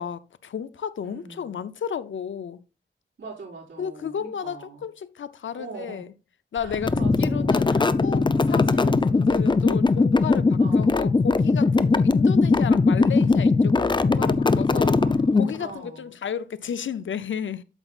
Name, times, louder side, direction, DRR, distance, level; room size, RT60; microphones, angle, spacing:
voice 1, 0.0-2.6 3.8-6.1 6.5-15.0 15.4-17.6, left 7 dB, 85° left, 0.6 m, -33 dB
voice 2, 1.0-1.6 3.2-4.8 5.6-6.1 6.6-7.9 8.3-8.9 10.6-11.2 14.7-16.1, right 3 dB, 80° right, 4.6 m, -42 dB
sound 1, 6.7-15.7, left 3 dB, 25° left, 0.4 m, -20 dB
8.9 x 7.1 x 2.4 m
wide cardioid pair, 90°, 19 cm